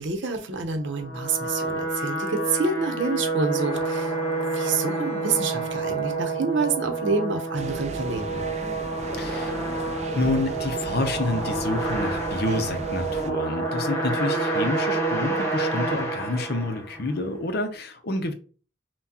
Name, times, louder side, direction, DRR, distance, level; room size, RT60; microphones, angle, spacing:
voice 1, 0.0-4.1 4.5-8.2, right 4 dB, 65° right, 0.8 m, -27 dB
sound 1, 0.9-17.2, right 3 dB, 15° left, 0.7 m, -28 dB
Bowed string instrument, 3.5-8.0, right 3 dB, 30° left, 1.3 m, -41 dB
sound 2, 7.5-13.3, right 2 dB, 35° right, 0.4 m, -36 dB
voice 2, 9.2-9.6 10.2-18.3, left 2 dB, 50° left, 0.6 m, -28 dB
5.8 x 2.2 x 2.8 m
head